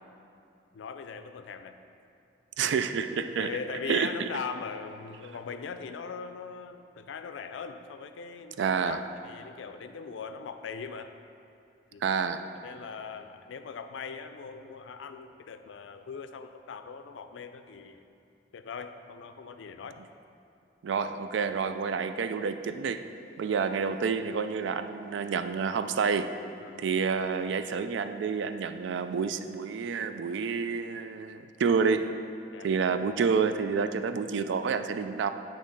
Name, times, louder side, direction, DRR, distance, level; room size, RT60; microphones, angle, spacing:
voice 1, 0.7-1.8 2.6-2.7 3.4-11.1 11.9-12.0 12.6-18.0 18.5-20.0 26.6-26.9 32.5-32.7, left 5 dB, 85° left, 9 dB, 0.4 m, -40 dB
voice 2, 2.6-3.5 3.9-4.3 8.6-9.0 12.0-12.4 20.8-23.1 23.4-26.4 26.8-32.0 32.6-35.3, right 5 dB, 75° right, 10 dB, 0.3 m, -29 dB
8.6 x 3.1 x 5.2 m, 2.6 s
head